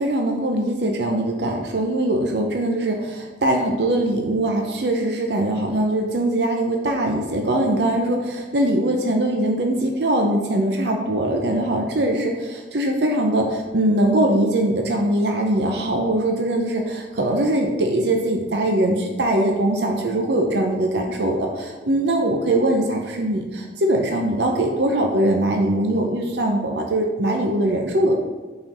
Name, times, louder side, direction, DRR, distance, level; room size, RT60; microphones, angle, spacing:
voice 1, 0.0-28.1, right 1 dB, 70° right, 2 dB, 0.7 m, -21 dB
5.7 x 4.4 x 5.2 m, 1.3 s
head